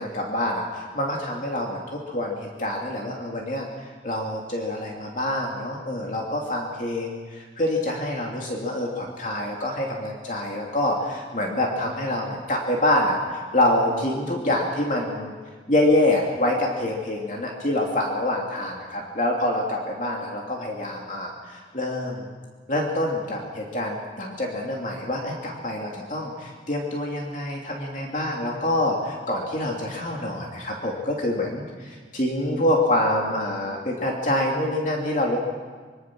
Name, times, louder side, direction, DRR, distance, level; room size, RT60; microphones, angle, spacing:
voice 1, 0.0-3.7 4.0-15.3 15.7-22.3 22.7-31.6 32.1-35.4, left 1 dB, 45° left, -1 dB, 2.8 m, -26 dB
25.5 x 24.0 x 6.2 m, 1.5 s
head